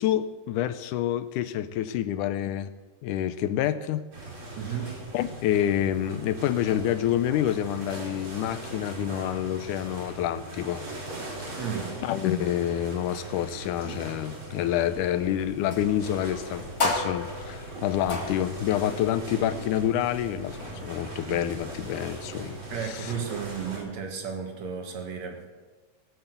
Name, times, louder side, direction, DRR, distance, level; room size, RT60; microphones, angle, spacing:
voice 1, 0.0-2.7 3.0-4.0 5.1-10.8 11.4-11.6 12.0-23.1, left 11 dB, 80° left, 13 dB, 2.1 m, -28 dB
sound 1, 4.1-23.8, right 2 dB, 40° right, 4.8 m, -39 dB
voice 2, 4.6-4.9 11.6-12.0 22.7-25.4, right 7 dB, 60° right, 3 dB, 2.7 m, -33 dB
sound 2, 14.8-22.2, left 2 dB, 35° left, 1.6 m, -36 dB
18.0 x 8.1 x 8.1 m, 1.3 s
omnidirectional pair, 3.7 m